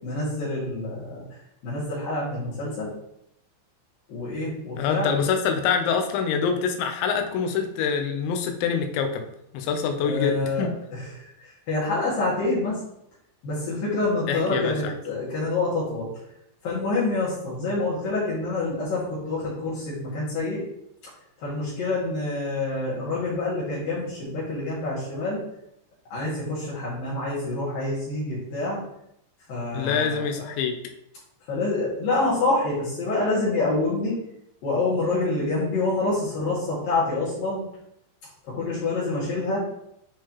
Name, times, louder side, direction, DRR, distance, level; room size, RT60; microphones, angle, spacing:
voice 1, 0.0-1.2 1.6-2.9 4.1-5.1 10.0-12.8 13.4-16.1 16.6-20.6 21.4-25.4 26.1-28.8 29.5-30.5 31.5-34.2 34.6-37.6 38.5-39.6, left 2 dB, 60° left, -8 dB, 3.4 m, -27 dB
voice 2, 4.8-9.3 9.5-10.7 14.3-14.9 29.7-30.7, left 6 dB, 85° left, 5 dB, 3.1 m, -25 dB
8.9 x 4.6 x 3.0 m, 0.77 s
omnidirectional pair, 5.1 m